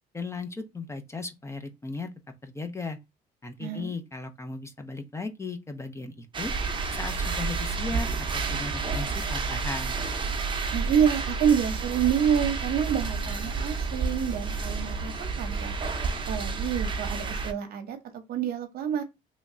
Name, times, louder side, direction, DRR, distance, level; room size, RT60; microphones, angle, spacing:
voice 1, 0.1-2.1 2.4-3.0 3.4-6.5 6.9-8.1 8.3-10.0, left 3 dB, 15° left, 0.5 m, -36 dB
voice 2, 3.6-3.9 10.7-15.7 16.3-19.0, right 8 dB, 65° right, 0.7 m, -27 dB
sound 1, 6.3-17.5, right 4 dB, 30° right, 0.7 m, -30 dB
3.1 x 2.2 x 3.7 m
cardioid pair, 110°, 17 cm